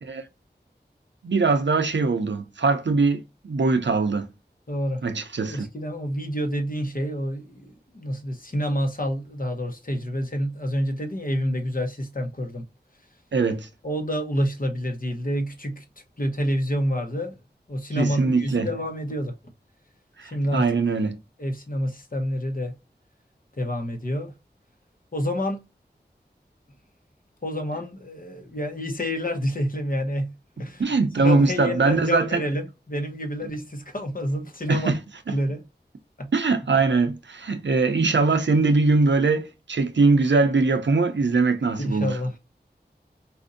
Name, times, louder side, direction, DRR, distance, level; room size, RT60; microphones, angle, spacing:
voice 1, 1.2-4.3 5.0-5.7 13.3-13.7 17.9-18.7 20.2-21.2 30.8-32.4 34.7-35.0 35.3-35.4 36.3-42.2, right 3 dB, 90° right, 0.6 m, -22 dB
voice 2, 4.7-5.0 5.5-12.6 13.8-15.8 16.2-17.4 17.7-19.3 20.2-20.7 21.4-22.7 23.6-24.3 25.1-25.6 27.4-30.3 30.6-30.8 31.2-34.9 35.3-35.6 36.2-36.3 41.8-42.3, equal, 50° left, 1.0 m, -28 dB
4.2 x 2.6 x 2.5 m
wide cardioid pair, 40°, 18 cm